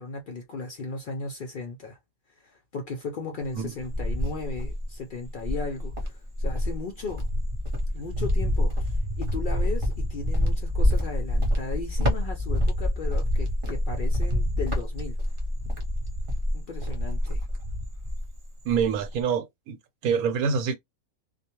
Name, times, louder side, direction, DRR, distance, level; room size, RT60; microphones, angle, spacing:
voice 1, 0.0-2.0 2.4-7.3 7.9-15.2 16.5-17.4, left 3 dB, 70° left, 0.4 m, -36 dB
Cricket, 3.4-4.9 5.4-18.4 18.7-19.2, left 1 dB, 35° right, 0.5 m, -27 dB
voice 2, 18.6-19.8 20.0-20.7, right 6 dB, 85° right, 1.1 m, -25 dB
2.3 x 2.2 x 2.8 m
omnidirectional pair, 1.5 m